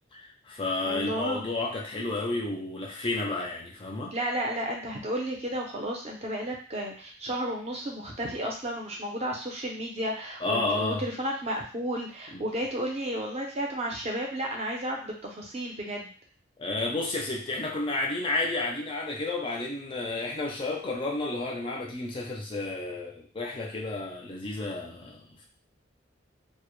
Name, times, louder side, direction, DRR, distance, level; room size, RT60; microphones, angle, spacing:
voice 1, 0.1-4.1 10.4-11.0 12.3-12.4 16.6-25.4, left 2 dB, 25° left, -1 dB, 0.4 m, -31 dB
voice 2, 0.8-1.4 4.1-16.1, right 1 dB, 35° right, 0 dB, 0.5 m, -32 dB
2.1 x 2.0 x 2.9 m, 0.41 s
head